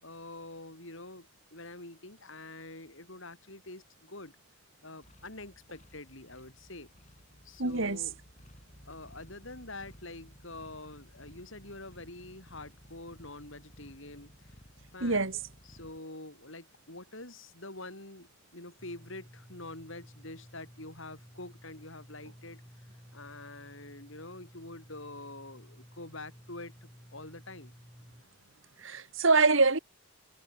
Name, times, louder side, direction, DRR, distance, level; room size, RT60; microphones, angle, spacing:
voice 1, 0.0-4.4 4.8-6.9 7.4-8.2 8.9-14.5 14.9-15.3 15.6-22.6 23.1-27.7, left 2 dB, 65° left, 6.3 m, -46 dB
sound 1, 5.0-16.0, equal, 35° left, 8.0 m, -56 dB
voice 2, 7.6-8.0 15.0-15.4 28.8-29.8, right 3 dB, 65° right, 2.0 m, -25 dB
sound 2, 18.8-28.2, equal, 10° left, 4.7 m, -54 dB
head